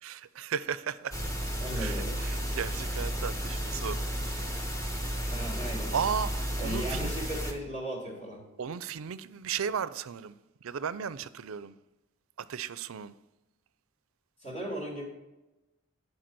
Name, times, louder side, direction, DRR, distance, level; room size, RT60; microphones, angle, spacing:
voice 1, 0.0-1.3 1.8-4.6 5.9-7.1 8.6-11.7 12.4-13.1, right 7 dB, 75° right, 0.4 m, -35 dB
sound 1, 1.1-7.5, equal, 15° left, 1.2 m, -33 dB
voice 2, 1.6-2.2 5.3-5.9 6.6-8.4 14.4-15.0, equal, 35° left, 2.5 m, -36 dB
10.0 x 4.8 x 6.0 m
head